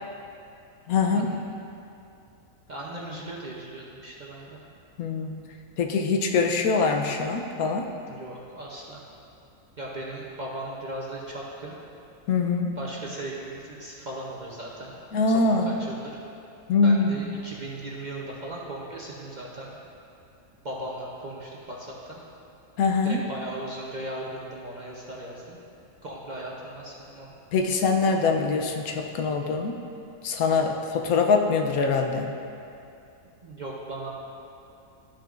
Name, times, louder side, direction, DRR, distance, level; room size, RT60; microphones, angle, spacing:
voice 1, 0.9-1.3 5.0-5.4 5.8-7.9 12.3-12.7 15.1-15.7 16.7-17.2 22.8-23.2 27.5-29.8 30.2-32.3, left 4 dB, 85° left, 4 dB, 1.1 m, -23 dB
voice 2, 2.7-4.6 8.1-9.0 9.8-11.8 12.8-15.0 15.3-16.1 16.8-19.7 20.6-22.2 23.0-25.6 26.0-27.3 33.4-34.1, right 1 dB, 40° right, -3 dB, 0.7 m, -37 dB
12.5 x 6.1 x 2.5 m, 2.6 s
omnidirectional pair, 1.5 m